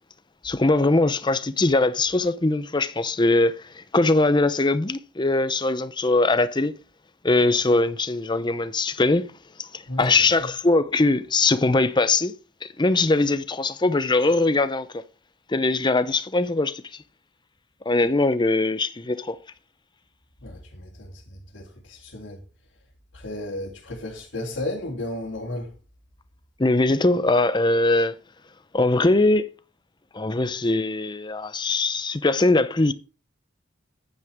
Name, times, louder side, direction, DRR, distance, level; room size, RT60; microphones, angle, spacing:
voice 1, 0.4-6.7 7.2-9.2 9.6-12.3 12.6-14.9 15.5-16.8 17.9-19.4 26.6-28.1 28.7-29.5 30.1-32.9, left 2 dB, 25° left, 0.7 m, -21 dB
voice 2, 9.9-10.5 20.4-22.4 23.1-25.7, left 1 dB, 65° left, 2.6 m, -34 dB
10.5 x 9.7 x 3.5 m
head